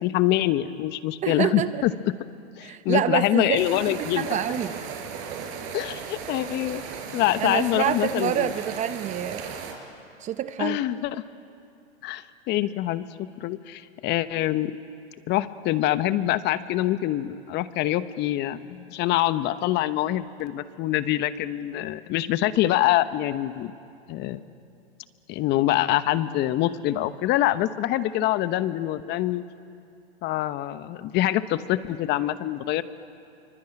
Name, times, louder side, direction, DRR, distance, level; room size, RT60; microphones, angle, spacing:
voice 1, 0.0-1.9 2.6-4.4 5.7-6.8 7.1-8.5 10.6-11.2 12.0-14.7 15.3-23.7 24.1-24.4 25.3-29.4 30.2-32.8, left 14 dB, 30° left, 13 dB, 1.0 m, -25 dB
voice 2, 1.2-1.8 2.6-4.7 7.4-9.5 10.2-10.8, right 10 dB, 20° right, 12 dB, 0.7 m, -27 dB
sound 1, 3.5-9.7, right 6 dB, 45° right, 5.7 m, -36 dB
27.0 x 24.5 x 8.9 m, 2.5 s
hypercardioid pair, 120°, 32 cm